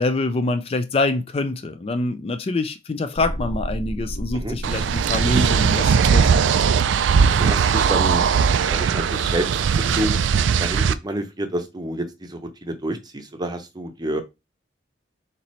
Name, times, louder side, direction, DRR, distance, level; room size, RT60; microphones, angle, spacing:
voice 1, 0.0-6.6, left 2 dB, 35° left, 0.4 m, -25 dB
sound 1, 3.2-10.4, equal, 90° left, 2.0 m, -35 dB
sound 2, 4.6-10.9, right 6 dB, 85° right, 0.4 m, -19 dB
voice 2, 7.4-8.2 8.7-10.2 10.6-14.2, right 1 dB, 25° right, 0.7 m, -28 dB
4.3 x 4.0 x 3.1 m
head